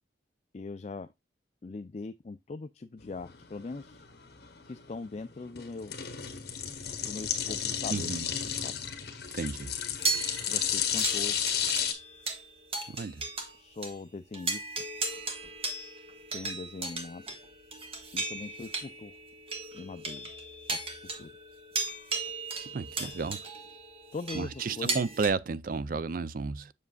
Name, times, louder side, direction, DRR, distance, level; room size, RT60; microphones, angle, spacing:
voice 1, 0.5-1.1 1.6-4.0 4.7-5.9 7.0-8.1 8.4-8.8 10.5-11.5 13.6-14.7 16.3-17.2 18.1-19.1 19.7-20.3 20.7-20.9 21.2-21.3 24.1-25.1, left 3 dB, 40° left, 0.4 m, -41 dB
sound 1, 3.0-11.9, left 8 dB, 60° left, 1.3 m, -33 dB
voice 2, 7.9-8.3 9.3-9.7 12.9-13.2 22.7-23.4 24.3-26.7, right 4 dB, 50° right, 0.4 m, -32 dB
sound 2, 10.0-13.6 13.8-14.0 14.3-25.3, right 3 dB, 35° right, 1.5 m, -36 dB
7.3 x 6.7 x 2.3 m
head